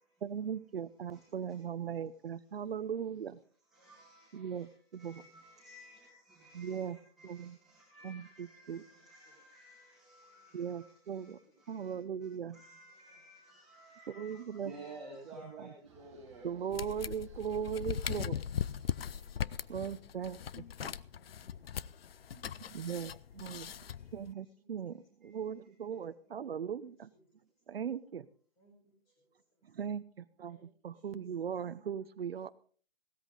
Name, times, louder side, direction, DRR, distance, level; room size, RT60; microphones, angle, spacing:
voice 1, 0.2-3.4 4.3-5.2 6.5-7.0 7.2-7.6 8.0-8.9 10.5-11.4 11.7-12.6 14.1-14.7 15.4-15.7 16.4-18.4 19.7-21.0 22.4-23.7 24.1-27.1 27.7-28.3 29.6-30.6 30.8-32.5, right 8 dB, 70° right, 13 dB, 0.8 m, -39 dB
voice 2, 3.7-12.0 12.5-16.5 18.9-19.4 22.1-22.7 25.2-25.4, right 2 dB, ahead, -9 dB, 2.3 m, -54 dB
voice 3, 8.9-9.4 12.3-12.5 12.9-13.2 15.9-16.2 19.4-19.9 21.1-22.2 23.6-24.8 26.1-27.5 28.6-29.8 30.4-31.2, equal, 15° left, 2 dB, 5.0 m, -69 dB
sound 1, 10.2-10.8 12.5-15.6, left 3 dB, 50° left, 4.5 m, -65 dB
sound 2, 15.8-20.8, right 6 dB, 30° right, 1.6 m, -63 dB
sound 3, 16.7-24.3, left 8 dB, 70° left, 0.6 m, -39 dB
16.5 x 13.5 x 3.9 m, 0.44 s
hypercardioid pair, 170°, 31 cm